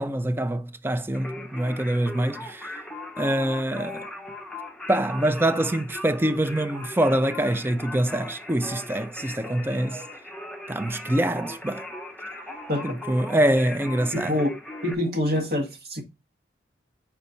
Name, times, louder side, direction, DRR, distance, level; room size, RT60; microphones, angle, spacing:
voice 1, 0.0-2.8 3.2-4.1 4.9-10.0 10.7-11.9 12.8-14.4, right 1 dB, 10° right, 0.4 m, -25 dB
Singing, 1.1-14.9, left 1 dB, 5° left, 0.8 m, -38 dB
voice 2, 14.1-14.6 14.8-16.0, left 1 dB, 55° right, 1.6 m, -26 dB
4.4 x 4.1 x 5.4 m
head